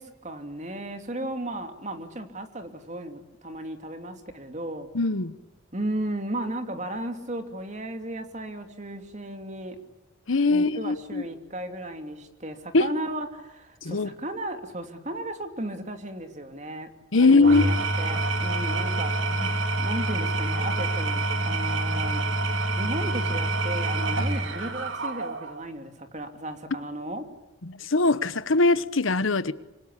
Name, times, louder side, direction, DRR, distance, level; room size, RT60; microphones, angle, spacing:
voice 1, 0.0-4.9 5.7-9.8 10.4-19.2 19.8-22.2 22.8-27.3, right 1 dB, 35° right, 2.9 m, -35 dB
voice 2, 4.9-5.3 10.3-11.2 12.7-12.9 13.8-14.1 17.1-17.7 19.4-19.5 24.2-24.3 27.6-29.5, left 3 dB, 80° left, 1.1 m, -21 dB
Engine / Tools, 17.3-25.6, right 2 dB, 75° right, 2.9 m, -27 dB
26.0 x 25.5 x 8.4 m
head